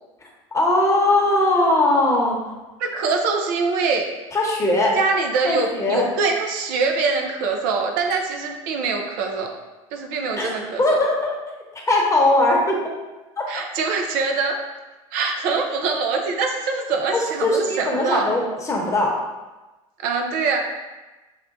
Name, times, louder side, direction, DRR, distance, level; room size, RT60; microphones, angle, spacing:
voice 1, 0.5-2.4 4.3-4.9 5.4-6.0 10.4-10.5 10.8-11.3 11.7-12.8 13.4-13.6 17.1-19.1, left 2 dB, 20° left, -2 dB, 0.9 m, -20 dB
voice 2, 2.8-4.1 4.9-9.5 9.9-11.0 13.5-14.6 15.1-18.3 20.0-20.6, right 4 dB, 60° right, 3 dB, 0.5 m, -23 dB
5.7 x 2.1 x 2.6 m, 1.1 s
hypercardioid pair, 80°, 17 cm